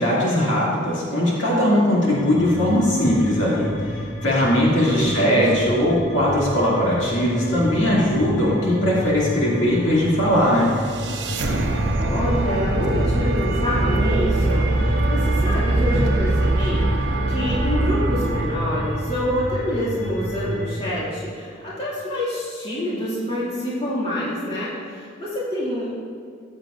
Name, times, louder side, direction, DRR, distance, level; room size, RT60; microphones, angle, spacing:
voice 1, 0.0-3.7 4.2-10.8, equal, 70° left, -6 dB, 2.5 m, -19 dB
sound 1, 2.0-20.8, left 1 dB, 45° left, 1.7 m, -31 dB
voice 2, 4.6-5.9 12.0-16.8 17.3-25.9, equal, 30° left, -8 dB, 2.2 m, -27 dB
sound 2, 10.4-19.5, right 2 dB, 60° right, 0.8 m, -22 dB
13.5 x 8.1 x 2.6 m, 2.2 s
head